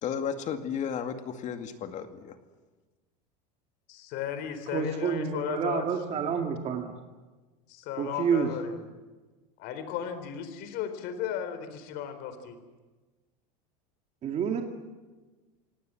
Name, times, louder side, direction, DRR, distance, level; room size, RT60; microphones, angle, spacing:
voice 1, 0.0-2.4, left 7 dB, 40° left, 8 dB, 2.2 m, -33 dB
voice 2, 3.9-5.8 6.1-6.3 7.7-8.9 9.6-12.6, left 9 dB, 55° left, 10 dB, 4.0 m, -35 dB
voice 3, 4.7-6.9 8.0-8.5 14.2-14.6, right 6 dB, 35° right, 3 dB, 2.3 m, -29 dB
28.5 x 18.5 x 7.7 m, 1.2 s
supercardioid pair, 125°, 19 cm